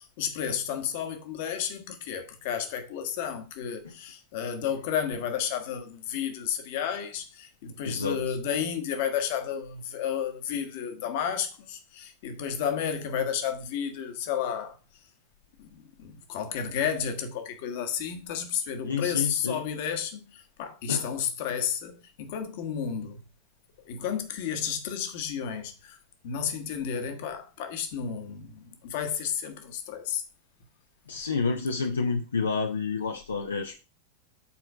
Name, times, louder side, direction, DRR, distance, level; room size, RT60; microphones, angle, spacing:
voice 1, 0.2-14.8 15.6-23.2 23.8-26.0 26.2-30.2, left 8 dB, 50° left, 1.3 m, -32 dB
voice 2, 7.8-8.4 18.9-19.6 20.9-21.1 31.1-33.8, left 4 dB, 70° left, 0.7 m, -29 dB
7.2 x 4.4 x 5.1 m
figure-of-eight pair, 90°, 0 cm